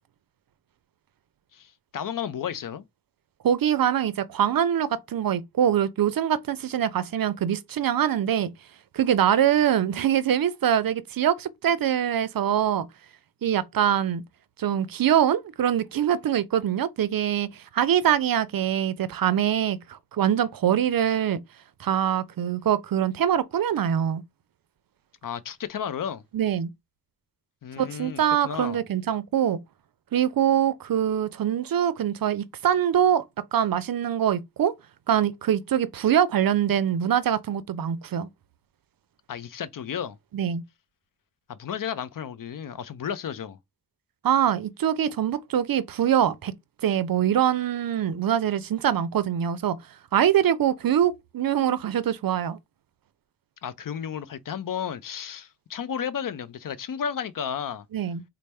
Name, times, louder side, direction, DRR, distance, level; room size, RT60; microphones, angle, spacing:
voice 1, 1.5-2.8 25.2-26.2 27.6-28.8 39.3-40.2 41.5-43.6 53.6-57.8, left 8 dB, 60° left, 0.5 m, -33 dB
voice 2, 3.4-8.5 8.9-12.9 13.4-14.2 14.6-21.4 21.8-24.2 26.3-26.7 27.8-29.6 30.1-33.2 33.5-34.7 35.1-38.3 40.3-40.6 44.2-46.5 46.8-49.8 50.1-52.6 57.9-58.2, right 10 dB, 70° right, 0.5 m, -24 dB
4.2 x 2.0 x 3.4 m
wide cardioid pair, 90°, 37 cm